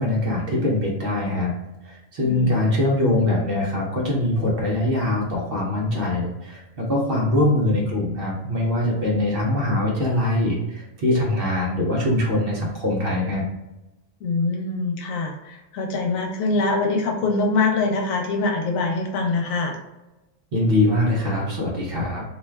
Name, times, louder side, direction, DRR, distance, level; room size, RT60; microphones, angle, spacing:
voice 1, 0.0-1.5 1.8-13.4 20.5-22.2, left 1 dB, 55° right, -3 dB, 0.8 m, -22 dB
voice 2, 2.2-2.6 14.2-19.8, left 3 dB, 85° left, 2 dB, 1.0 m, -24 dB
2.5 x 2.3 x 3.2 m, 1.0 s
omnidirectional pair, 1.4 m